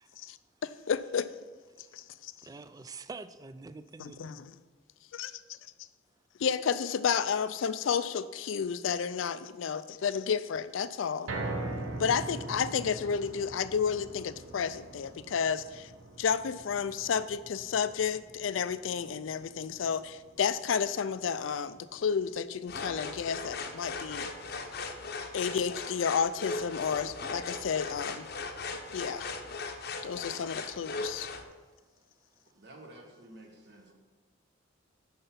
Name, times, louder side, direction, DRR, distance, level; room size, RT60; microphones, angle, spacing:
voice 1, 0.6-1.3 1.8-2.0 4.0-4.6 5.2-5.3 5.8-5.9 6.4-11.3 11.9-15.9 16.2-24.3 25.3-28.3 28.9-29.3 30.0-31.3, left 6 dB, 90° left, 0.4 m, -31 dB
voice 2, 2.4-4.4, right 3 dB, 20° right, 0.3 m, -46 dB
sound 1, 11.3-23.5 23.9-24.0 24.5-24.6, right 2 dB, 90° right, 0.9 m, -43 dB
sound 2, 22.7-31.4, left 3 dB, 55° left, 0.7 m, -38 dB
voice 3, 32.6-33.9, right 1 dB, 60° right, 1.4 m, -51 dB
6.9 x 5.6 x 5.7 m
head